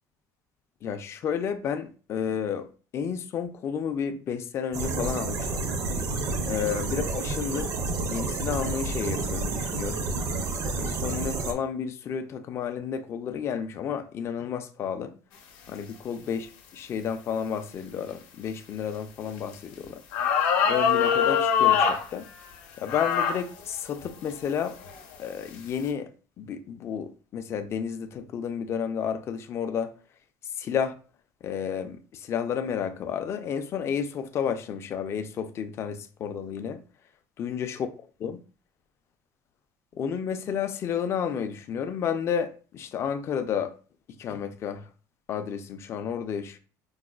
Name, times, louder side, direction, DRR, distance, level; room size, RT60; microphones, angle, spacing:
voice 1, 0.8-2.7 2.9-5.7 6.4-7.7 8.1-10.1 10.8-15.1 15.7-20.0 20.7-22.3 22.8-24.8 25.2-26.1 26.4-29.9 30.6-30.9 31.4-36.8 37.4-37.9 38.2-38.4 39.9-43.7 44.2-44.9 45.3-46.6, left 7 dB, 35° left, 0.4 m, -31 dB
sound 1, 4.7-11.5, right 3 dB, 45° right, 0.5 m, -30 dB
sound 2, 19.5-19.6 20.1-22.0 22.9-23.4 24.0-24.1 24.8-25.1, left 7 dB, 75° left, 0.7 m, -23 dB
4.7 x 2.1 x 2.3 m
cardioid pair, 145°, 8 cm